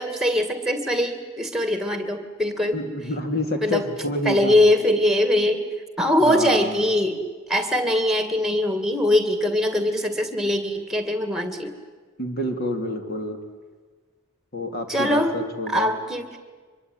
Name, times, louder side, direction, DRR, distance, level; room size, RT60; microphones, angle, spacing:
voice 1, 0.0-2.8 3.6-3.9 4.2-5.7 6.0-7.2 7.5-11.8 14.9-15.4 15.7-16.3, left 1 dB, ahead, 9 dB, 2.2 m, -22 dB
voice 2, 2.7-4.5 6.2-6.9 12.2-13.4 14.5-15.9, left 1 dB, 45° left, 5 dB, 2.8 m, -28 dB
25.0 x 22.5 x 9.6 m, 1.4 s
head